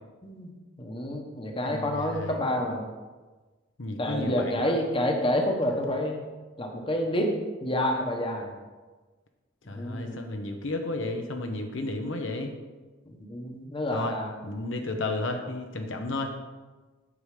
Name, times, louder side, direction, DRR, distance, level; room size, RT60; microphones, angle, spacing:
voice 1, 0.8-2.9 4.0-6.2 6.6-7.3 7.6-8.5 9.6-10.3 13.1-14.3, left 1 dB, 25° left, 2 dB, 1.1 m, -28 dB
voice 2, 1.6-2.4 3.8-4.8 5.7-5.8 9.7-12.5 13.9-14.1 14.4-16.3, left 2 dB, 70° left, 4 dB, 0.9 m, -33 dB
8.7 x 7.1 x 4.9 m, 1.3 s
head